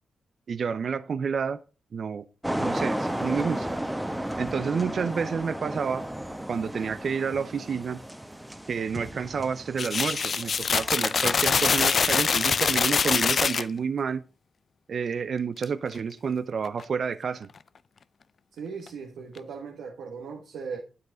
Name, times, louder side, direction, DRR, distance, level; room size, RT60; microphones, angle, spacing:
voice 1, 0.5-1.6 1.9-2.2 2.6-3.7 4.4-6.0 6.5-8.0 8.7-14.2 14.9-17.5, right 6 dB, 60° right, 0.5 m, -29 dB
sound 1, 2.4-12.8, right 1 dB, 10° right, 1.2 m, -34 dB
sound 2, 9.8-13.6 15.6-15.7 15.9-16.1 16.6-16.8 18.9-19.0 19.4-19.5, left 5 dB, 55° left, 0.4 m, -24 dB
voice 2, 18.5-20.8, right 5 dB, 80° right, 1.5 m, -38 dB
9.5 x 8.3 x 3.9 m
supercardioid pair, 50°, 0 cm